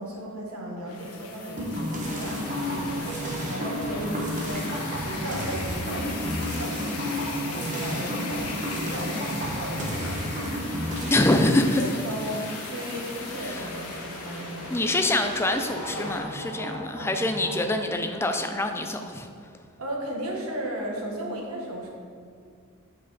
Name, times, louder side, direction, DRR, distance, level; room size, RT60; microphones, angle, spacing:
voice 1, 0.0-11.3 11.8-14.8 19.8-21.9, equal, 75° right, -1 dB, 1.3 m, -35 dB
sound 1, 0.9-17.9, left 3 dB, 85° left, 1.2 m, -39 dB
sound 2, 1.6-11.1, equal, 35° right, 1.0 m, -31 dB
sound 3, 2.0-16.2, left 1 dB, 70° left, 1.8 m, -40 dB
voice 2, 11.1-11.8 13.5-13.6 14.7-19.3, left 1 dB, 10° left, 5 dB, 0.4 m, -25 dB
7.7 x 5.5 x 4.0 m, 2.2 s
head